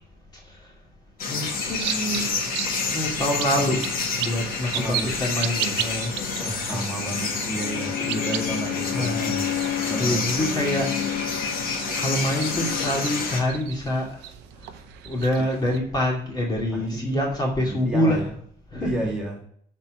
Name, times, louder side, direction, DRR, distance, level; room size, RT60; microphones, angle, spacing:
sound 1, 1.2-13.4, left 4 dB, 60° left, 2.0 m, -29 dB
voice 1, 1.3-2.3 2.9-3.8 4.2-6.1 6.7-6.9 8.9-9.5 10.0-11.3 12.0-14.1 15.1-18.3 18.7-19.1, left 1 dB, 25° left, -2 dB, 2.4 m, -26 dB
sound 2, 1.5-15.8, right 11 dB, 90° right, 0.7 m, -36 dB
voice 2, 4.7-5.2 6.4-9.5 9.9-10.3 16.7-17.3 17.6-18.3 18.7-19.4, right 1 dB, 5° right, -4 dB, 2.6 m, -32 dB
Bowed string instrument, 7.6-13.0, left 12 dB, 90° left, 1.3 m, -32 dB
7.5 x 4.3 x 6.1 m, 0.63 s
cardioid pair, 110°, 17 cm